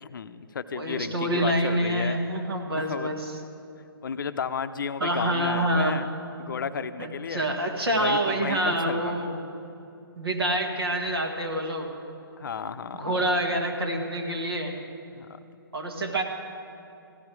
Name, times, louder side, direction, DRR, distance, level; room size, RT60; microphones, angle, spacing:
voice 1, 0.0-2.2 2.7-3.2 4.0-7.5 7.9-9.3 12.4-13.2 15.1-15.4, left 6 dB, 55° left, 12 dB, 0.5 m, -33 dB
voice 2, 0.7-3.2 5.0-6.1 7.0-9.4 10.2-11.9 13.0-14.7 15.7-16.2, right 1 dB, 80° right, 2 dB, 1.7 m, -27 dB
15.0 x 11.0 x 4.6 m, 2.7 s
figure-of-eight pair, 140°, 13 cm